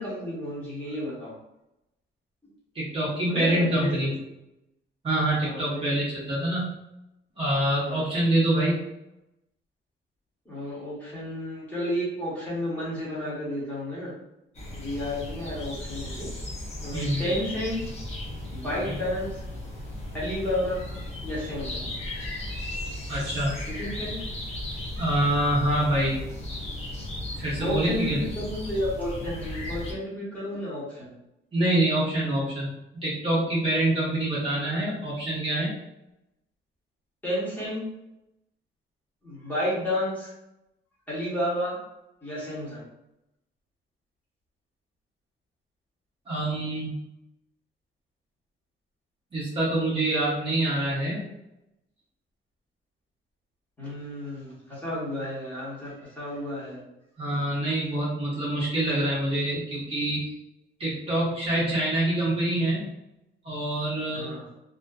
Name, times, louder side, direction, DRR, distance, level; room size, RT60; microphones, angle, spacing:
voice 1, 0.0-1.3 3.3-4.0 5.4-5.9 7.8-8.1 10.4-14.1 14.7-16.3 16.8-17.8 18.5-19.4 20.2-21.9 23.1-23.2 23.7-24.2 25.0-25.3 27.4-31.1 37.2-37.9 39.2-40.3 41.1-41.8 42.2-42.8 53.8-56.8 57.3-57.4 64.1-64.4, left 1 dB, 10° left, -9 dB, 1.0 m, -32 dB
voice 2, 2.7-4.1 5.0-6.7 7.4-8.8 16.9-17.2 18.8-19.0 23.1-23.5 25.0-26.2 27.4-28.2 31.5-32.7 33.0-35.7 46.3-46.9 49.3-51.2 57.2-60.2 60.8-62.9 63.4-64.3, right 1 dB, 25° right, -8 dB, 0.6 m, -25 dB
sound 1, 14.5-29.9, left 1 dB, 30° left, 0.5 m, -36 dB
2.4 x 2.4 x 2.2 m, 0.87 s
cardioid pair, 175°, 20 cm